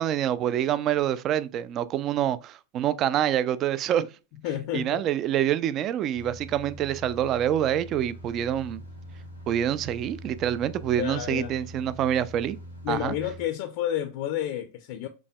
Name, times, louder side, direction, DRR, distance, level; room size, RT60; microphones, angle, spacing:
voice 1, 0.0-4.1 4.7-8.8 9.5-12.6 12.9-13.1, right 10 dB, 35° right, 0.3 m, -26 dB
voice 2, 4.4-5.0 11.0-11.5 12.8-15.1, left 11 dB, 50° left, 0.5 m, -30 dB
sound 1, 6.1-13.5, equal, 90° right, 1.0 m, -43 dB
6.0 x 3.3 x 2.2 m
figure-of-eight pair, 90°, 0 cm